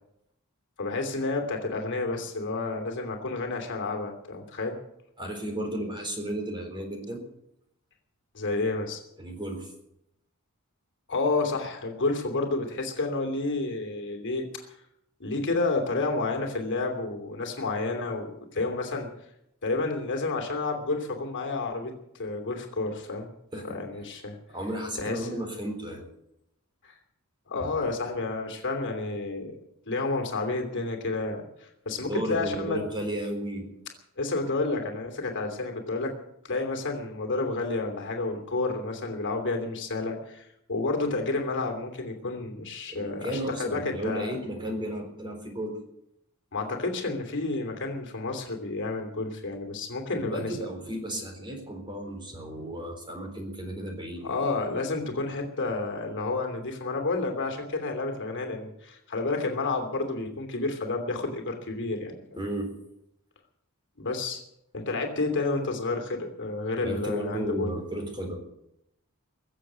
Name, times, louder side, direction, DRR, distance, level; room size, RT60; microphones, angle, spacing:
voice 1, 0.8-4.8 8.3-9.0 11.1-14.7 15.2-19.1 19.6-23.3 23.6-24.4 25.0-25.3 26.8-26.9 27.5-29.5 29.9-32.8 34.2-36.1 36.4-44.3 46.5-50.6 54.2-62.1 64.0-64.4 64.7-67.8, left 3 dB, 55° left, 3 dB, 3.0 m, -30 dB
voice 2, 5.2-7.2 9.2-9.7 23.5-23.8 24.5-26.0 27.6-27.7 31.9-33.7 42.9-45.8 50.2-54.4 62.4-62.7 66.8-68.4, right 1 dB, 20° right, 3 dB, 3.9 m, -34 dB
23.0 x 7.6 x 8.2 m, 0.81 s
head